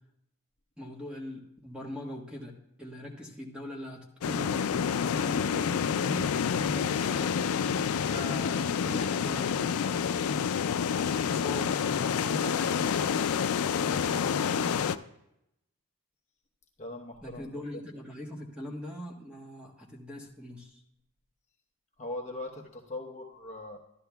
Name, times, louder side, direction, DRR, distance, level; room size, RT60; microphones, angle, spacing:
voice 1, 0.8-2.5 2.8-7.3 8.0-10.0 11.0-13.2 13.8-14.8 17.2-20.8, left 1 dB, 5° right, -1 dB, 1.2 m, -41 dB
sound 1, 4.2-15.0, left 7 dB, 75° left, 0.4 m, -28 dB
voice 2, 16.8-17.9 22.0-23.8, left 2 dB, 30° left, -1 dB, 1.0 m, -40 dB
13.0 x 11.5 x 2.3 m, 0.82 s
head